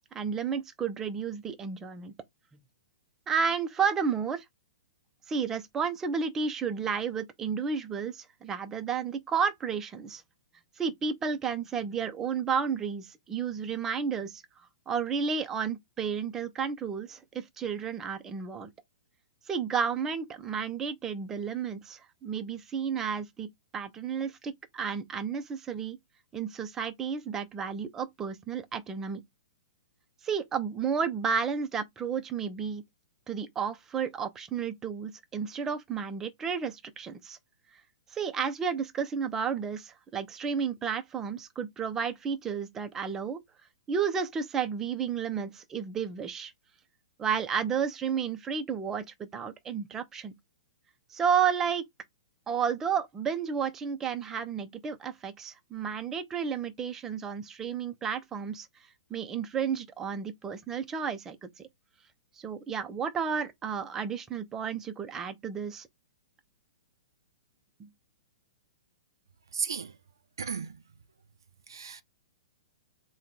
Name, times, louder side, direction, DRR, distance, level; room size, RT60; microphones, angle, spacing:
voice 1, 0.1-2.1 3.3-4.4 5.3-10.2 10.8-14.4 14.9-18.7 19.5-26.0 26.3-29.2 30.2-32.8 33.3-37.4 38.1-43.4 43.9-46.5 47.2-50.3 51.1-51.8 52.5-58.7 59.1-61.7 62.4-65.9 67.8-67.9, right 6 dB, 20° right, 0.7 m, -32 dB
voice 2, 69.5-69.9 70.4-70.8 71.7-72.0, right 6 dB, 80° right, 0.6 m, -34 dB
3.7 x 2.3 x 4.3 m
hypercardioid pair, 120°, 2 cm